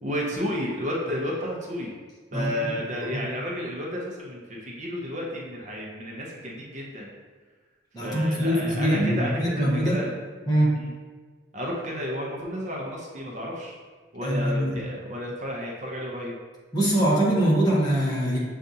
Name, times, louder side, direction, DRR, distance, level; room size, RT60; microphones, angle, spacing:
voice 1, 0.0-1.9 2.3-7.1 8.0-10.2 10.8-10.9 11.5-13.8 14.1-16.4, equal, 40° right, -2 dB, 0.6 m, -32 dB
voice 2, 2.3-3.2 7.9-10.0 10.5-10.8 14.2-14.7 16.7-18.4, right 1 dB, 20° left, -6 dB, 0.9 m, -23 dB
6.5 x 2.4 x 2.7 m, 1.4 s
head